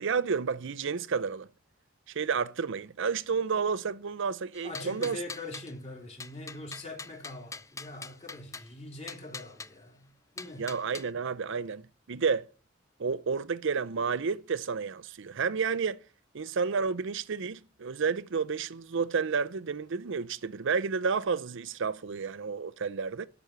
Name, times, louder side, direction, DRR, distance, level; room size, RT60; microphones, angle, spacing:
voice 1, 0.0-1.5 2.1-5.2 10.6-11.8 12.1-12.4 13.0-16.0 16.3-23.3, right 5 dB, 65° right, 0.6 m, -31 dB
sound 1, 4.5-5.7 6.2-8.7 9.1-9.7 10.4-11.1, left 4 dB, 15° left, 0.4 m, -43 dB
voice 2, 4.6-10.7, left 2 dB, 35° left, 3.3 m, -43 dB
12.5 x 6.0 x 6.6 m
head